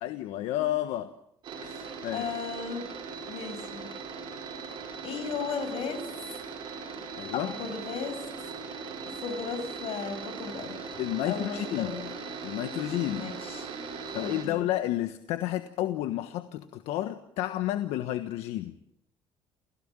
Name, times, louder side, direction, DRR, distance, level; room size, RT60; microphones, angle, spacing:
voice 1, 0.0-1.1 1.6-2.2 7.1-7.5 11.0-11.9 12.4-13.3 14.1-18.7, left 14 dB, 90° left, 9 dB, 1.3 m, -31 dB
sound 1, 1.4-14.4, right 5 dB, 50° right, 7.2 m, -39 dB
voice 2, 2.1-2.8 3.3-3.9 5.0-6.2 7.3-8.2 9.1-11.0 11.3-12.1 13.2-13.7 14.1-14.6, left 5 dB, 65° left, 9 dB, 7.5 m, -35 dB
29.5 x 16.5 x 9.0 m, 0.78 s
cardioid pair, 140°, 11 cm